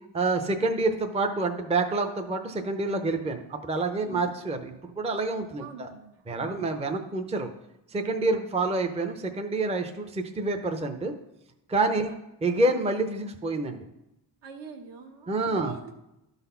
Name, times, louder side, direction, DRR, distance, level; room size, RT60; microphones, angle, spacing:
voice 1, 0.1-5.9 6.3-7.5 7.9-11.1 11.7-12.1 12.4-13.8 15.3-15.7, right 2 dB, 15° right, 5 dB, 0.6 m, -27 dB
voice 2, 5.6-6.7 11.9-12.0 14.4-15.9, right 5 dB, 65° right, 3 dB, 1.3 m, -45 dB
12.0 x 4.1 x 5.6 m, 0.89 s
cardioid pair, 120°, 46 cm